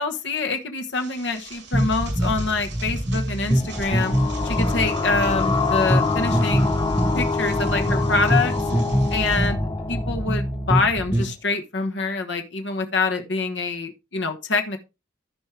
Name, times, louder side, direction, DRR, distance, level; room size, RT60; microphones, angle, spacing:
voice 1, 0.0-4.1 4.4-6.7 7.1-8.5 9.1-9.6 9.9-14.8, left 3 dB, 70° left, 1.2 m, -25 dB
sound 1, 0.9-9.5, right 4 dB, 70° right, 5.4 m, -44 dB
sound 2, 1.7-11.3, equal, 10° right, 1.7 m, -24 dB
sound 3, 3.5-11.0, left 4 dB, 25° left, 1.0 m, -26 dB
14.0 x 5.3 x 3.3 m
head